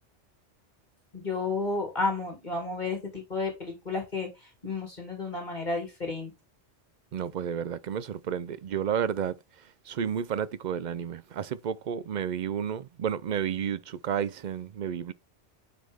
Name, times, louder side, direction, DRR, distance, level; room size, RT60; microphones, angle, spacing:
voice 1, 1.1-6.3, left 3 dB, 40° left, 2.6 m, -32 dB
voice 2, 7.1-9.3 9.9-15.1, right 8 dB, 55° right, 0.5 m, -31 dB
9.2 x 4.2 x 3.5 m
omnidirectional pair, 1.2 m